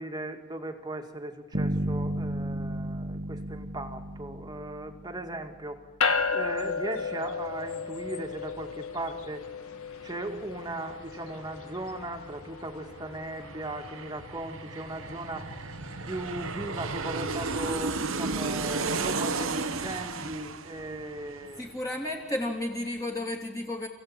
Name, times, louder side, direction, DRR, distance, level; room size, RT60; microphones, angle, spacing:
voice 1, 0.0-5.8 6.3-9.5 10.0-15.5 16.0-21.7, right 2 dB, 20° right, 5 dB, 2.0 m, -37 dB
sound 1, 1.5-5.5, right 1 dB, 40° right, 1.3 m, -33 dB
sound 2, 6.0-17.6, left 5 dB, 75° left, 1.6 m, -35 dB
Aircraft, 10.5-10.6 10.9-22.2 22.5-22.6, right 4 dB, 65° right, 1.1 m, -34 dB
voice 2, 21.6-23.9, left 1 dB, 15° left, 0 dB, 3.0 m, -32 dB
28.5 x 16.5 x 8.8 m, 1.2 s
head